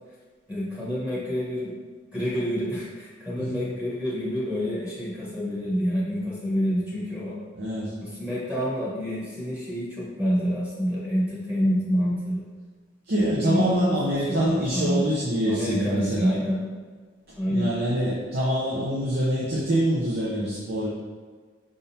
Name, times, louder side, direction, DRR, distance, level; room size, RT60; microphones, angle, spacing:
voice 1, 0.5-1.7 2.1-7.3 8.0-12.4 13.2-14.0 14.3-15.1 15.5-16.6 17.4-17.7, equal, 5° right, -8 dB, 1.3 m, -27 dB
voice 2, 7.6-7.9 13.1-16.3 17.5-20.9, right 1 dB, 50° right, -6 dB, 0.8 m, -25 dB
5.1 x 3.7 x 2.8 m, 1.5 s
head